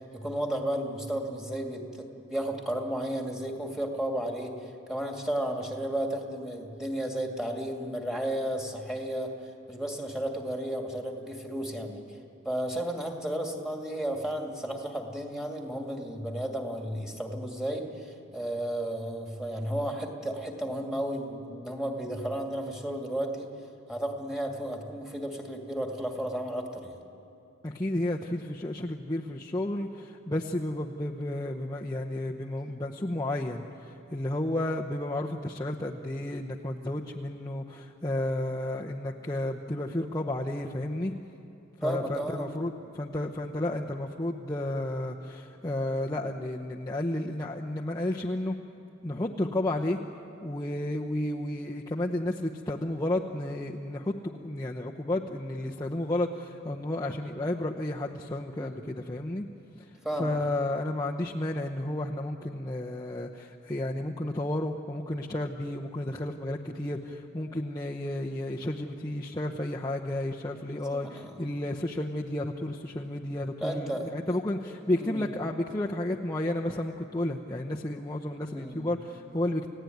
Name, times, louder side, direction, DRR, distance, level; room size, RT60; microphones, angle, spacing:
voice 1, 0.1-4.5 4.9-9.3 9.7-12.0 12.4-23.5 23.9-26.9 41.8-42.5 58.6-58.8 60.0-60.4 70.9-71.3 73.6-74.1 75.0-75.2 78.5-78.9, right 1 dB, ahead, 1 dB, 2.4 m, -33 dB
voice 2, 27.6-41.1 41.8-48.6 49.0-50.0 50.4-59.4 59.8-59.9 60.2-79.7, left 1 dB, 20° left, -1 dB, 0.8 m, -32 dB
30.0 x 16.5 x 9.4 m, 2.8 s
head